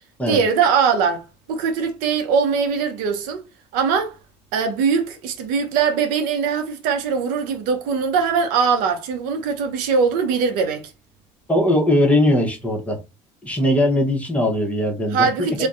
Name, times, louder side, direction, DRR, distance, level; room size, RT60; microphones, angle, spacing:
voice 1, 0.3-3.4 3.7-4.2 4.5-10.9 15.1-15.7, right 6 dB, 75° right, 0.6 m, -21 dB
voice 2, 11.5-13.0 13.4-15.5, left 1 dB, 10° left, 0.9 m, -19 dB
2.5 x 2.1 x 2.4 m
supercardioid pair, 80°, 14 cm